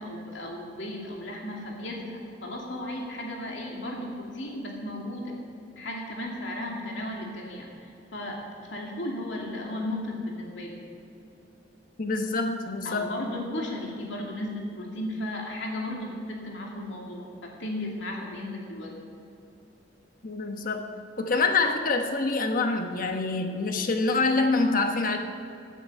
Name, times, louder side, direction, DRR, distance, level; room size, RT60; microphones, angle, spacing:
voice 1, 0.0-5.3 5.8-7.7 8.1-10.8 12.8-18.9, left 1 dB, 90° left, -1 dB, 2.5 m, -35 dB
voice 2, 12.0-13.1 20.2-20.8 21.2-25.2, left 3 dB, 50° left, 5 dB, 1.1 m, -26 dB
16.0 x 9.3 x 5.4 m, 2.8 s
head